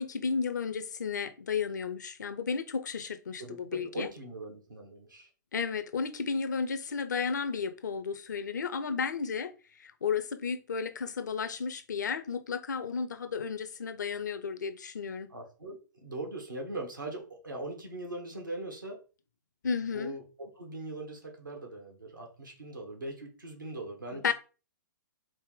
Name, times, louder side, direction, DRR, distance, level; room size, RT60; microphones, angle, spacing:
voice 1, 0.0-4.1 5.5-9.5 9.8-15.3 19.6-20.1 24.1-24.3, left 5 dB, 65° left, 0.6 m, -33 dB
voice 2, 3.4-5.3 15.3-19.0 19.9-24.3, right 2 dB, 80° right, 1.4 m, -41 dB
4.9 x 2.1 x 3.8 m
figure-of-eight pair, 115°, 10 cm